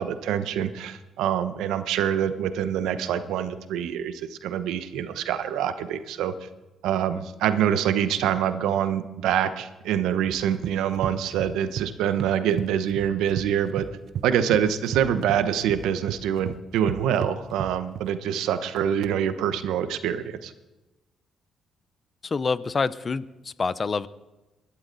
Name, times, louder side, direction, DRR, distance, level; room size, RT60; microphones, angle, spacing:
voice 1, 0.0-6.5 6.8-13.9 14.2-20.5, right 9 dB, 90° right, 11 dB, 0.9 m, -25 dB
sound 1, 10.3-11.9 12.2-13.5 13.8-18.1, right 9 dB, 65° right, 0.6 m, -33 dB
voice 2, 22.2-24.1, left 4 dB, 35° left, 17 dB, 0.6 m, -27 dB
22.5 x 11.5 x 4.0 m, 1.1 s
cardioid pair, 90°, 0 cm